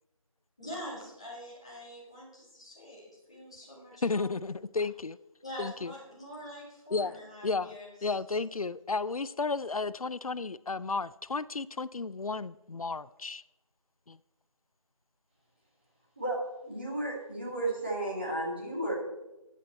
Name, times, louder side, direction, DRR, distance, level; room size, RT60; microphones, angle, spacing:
voice 1, 0.6-4.6 5.4-8.1, equal, 10° left, 1.7 m, -45 dB
voice 2, 4.0-5.2 5.6-5.9 6.9-7.2 7.4-7.8 8.0-13.4 14.1-14.2, left 4 dB, 85° left, 0.5 m, -33 dB
voice 3, 16.2-18.9, right 1 dB, 20° right, 2.5 m, -33 dB
14.5 x 10.0 x 4.3 m
figure-of-eight pair, 180°, 18 cm